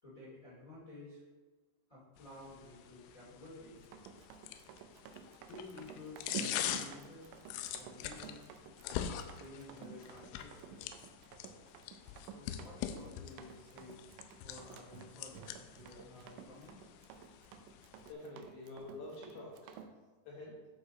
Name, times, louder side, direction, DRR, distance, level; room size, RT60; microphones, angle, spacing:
voice 1, 0.0-1.2 1.9-3.8 5.4-7.3 7.7-8.4 9.3-10.9 12.1-16.9, left 2 dB, 30° left, -9 dB, 1.7 m, -53 dB
sound 1, 2.2-18.1, left 10 dB, 90° left, 3.1 m, -44 dB
Run, 3.8-19.9, right 7 dB, 90° right, 3.2 m, -51 dB
voice 2, 18.1-19.8 20.3-20.6, left 2 dB, 70° left, -5 dB, 2.8 m, -47 dB
12.5 x 4.9 x 4.1 m, 1.3 s
omnidirectional pair, 5.4 m